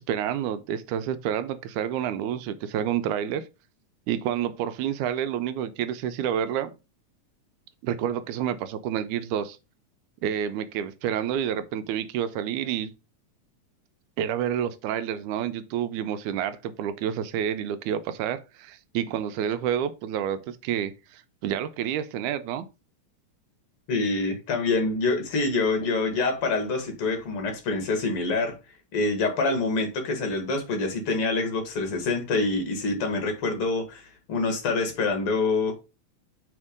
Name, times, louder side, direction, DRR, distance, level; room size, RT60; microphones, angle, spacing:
voice 1, 0.0-3.5 4.1-6.7 7.8-9.6 10.2-12.9 14.2-22.7, right 9 dB, 85° right, 2.0 m, -29 dB
voice 2, 23.9-28.6 28.9-35.7, left 3 dB, 55° left, 2.2 m, -26 dB
4.5 x 4.4 x 4.9 m
omnidirectional pair, 3.4 m